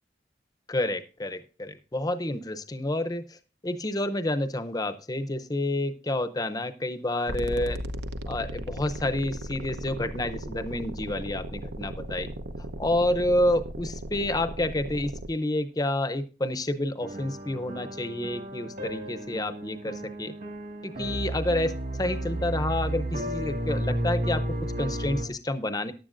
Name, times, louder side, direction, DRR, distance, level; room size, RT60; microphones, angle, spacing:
voice 1, 0.7-3.4 3.6-7.8 8.3-12.3 12.8-20.4 20.8-21.7 22.0-25.9, left 1 dB, 20° left, 11 dB, 0.7 m, -29 dB
sound 1, 7.3-15.3, right 1 dB, 70° right, 0.8 m, -36 dB
sound 2, 17.0-25.3, right 1 dB, 50° right, 2.0 m, -32 dB
14.5 x 10.5 x 2.5 m, 0.33 s
head